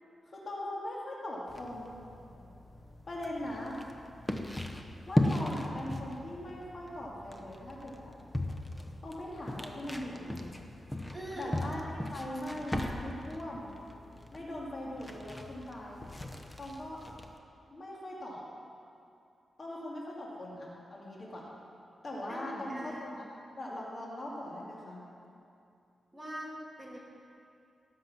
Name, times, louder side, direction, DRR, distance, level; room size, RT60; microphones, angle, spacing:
voice 1, 0.3-2.0 3.1-3.8 5.1-8.1 9.0-10.6 11.4-13.7 14.3-16.0 16.6-17.0 17.7-18.4 19.6-21.5 22.0-23.3 23.6-25.0, left 1 dB, 40° left, -4 dB, 2.6 m, -40 dB
sound 1, 1.5-17.4, left 1 dB, 10° left, 0.9 m, -38 dB
voice 2, 11.1-11.6 22.3-23.3 26.1-26.5 26.8-27.0, equal, 5° right, -5 dB, 2.5 m, -42 dB
18.0 x 7.4 x 6.0 m, 2.5 s
wide cardioid pair, 120°, 0 cm